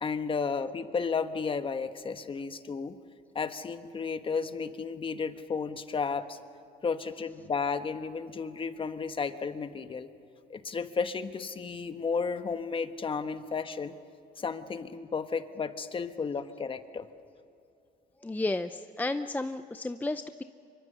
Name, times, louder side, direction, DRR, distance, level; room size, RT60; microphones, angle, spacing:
voice 1, 0.0-3.0 3.3-6.4 6.8-10.1 10.5-14.0 14.4-17.1, left 5 dB, 30° left, 10 dB, 1.3 m, -33 dB
voice 2, 18.2-20.4, left 2 dB, 10° left, 10 dB, 0.6 m, -32 dB
25.0 x 24.0 x 6.9 m, 2.7 s
cardioid pair, 110°, 17 cm